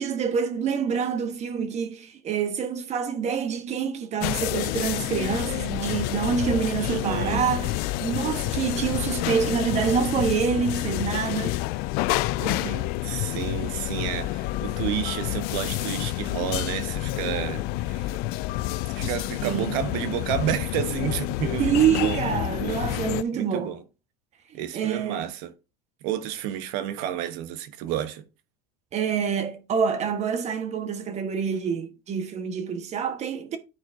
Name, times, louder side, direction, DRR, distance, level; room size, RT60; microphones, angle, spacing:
voice 1, 0.0-11.6 19.4-19.8 21.6-23.7 24.7-25.3 28.9-33.6, right 7 dB, 40° right, 1.4 m, -26 dB
sound 1, 4.2-23.2, left 17 dB, 60° left, 0.4 m, -29 dB
voice 2, 6.8-7.4 12.4-18.2 18.9-22.9 23.3-23.8 24.5-25.5 26.0-28.2, right 11 dB, 75° right, 1.2 m, -31 dB
13.0 x 4.4 x 2.8 m
supercardioid pair, 125°, 18 cm